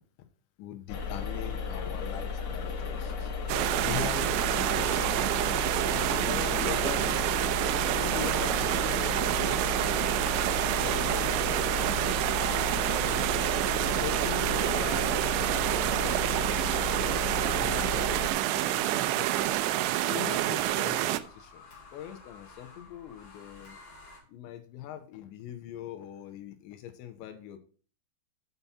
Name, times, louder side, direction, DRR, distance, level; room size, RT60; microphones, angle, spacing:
voice 1, 0.6-7.4 7.7-10.3 10.7-12.5 12.8-13.0 13.9-15.5 16.0-17.9 18.4-19.6 20.0-21.7 21.9-23.8 24.3-27.6, left 11 dB, 85° left, 6 dB, 3.1 m, -42 dB
sound 1, 0.9-18.3, left 5 dB, 70° left, 1.6 m, -34 dB
sound 2, 3.5-21.2, right 14 dB, 85° right, 2.9 m, -28 dB
sound 3, 16.4-24.2, left 4 dB, 40° left, 1.4 m, -52 dB
8.3 x 5.6 x 5.7 m, 0.41 s
omnidirectional pair, 5.3 m